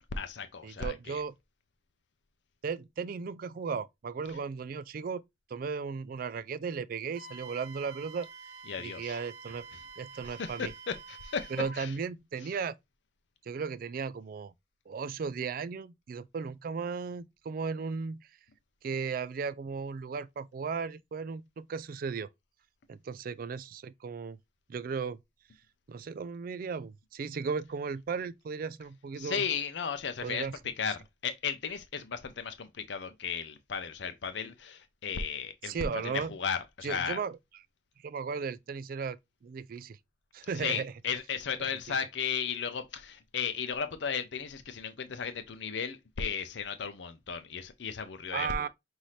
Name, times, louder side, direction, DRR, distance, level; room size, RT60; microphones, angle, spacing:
voice 1, 0.1-1.2 8.7-9.2 10.2-11.5 11.8-11.9 29.2-30.5 30.8-35.8 36.0-37.2 40.6-48.7, left 6 dB, 70° left, 0.6 m, -35 dB
voice 2, 0.6-1.4 2.6-5.2 5.5-8.3 8.8-9.7 10.0-10.7 11.5-12.7 13.5-14.5 14.9-18.3 18.8-22.3 22.9-24.4 24.7-25.2 25.9-29.5 30.2-30.6 35.6-36.3 36.8-37.4 38.0-40.0 40.3-40.9 48.3-48.7, right 5 dB, 50° right, 0.3 m, -36 dB
Wind instrument woodwind instrument, 7.1-11.8, right 4 dB, 80° right, 0.7 m, -48 dB
5.6 x 2.7 x 3.1 m
head